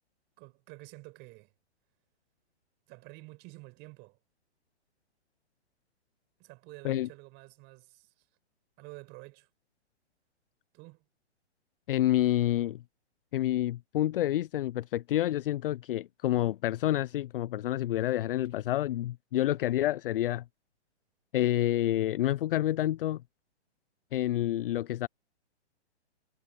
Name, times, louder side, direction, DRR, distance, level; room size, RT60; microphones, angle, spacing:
voice 1, 0.4-1.5 2.9-4.2 6.4-8.3 8.8-9.5 10.7-11.0, right 24 dB, 30° right, 4.8 m, -50 dB
voice 2, 11.9-12.8 13.3-20.4 21.3-23.2 24.1-25.1, left 13 dB, 55° left, 0.5 m, -28 dB
hypercardioid pair, 140°, 35 cm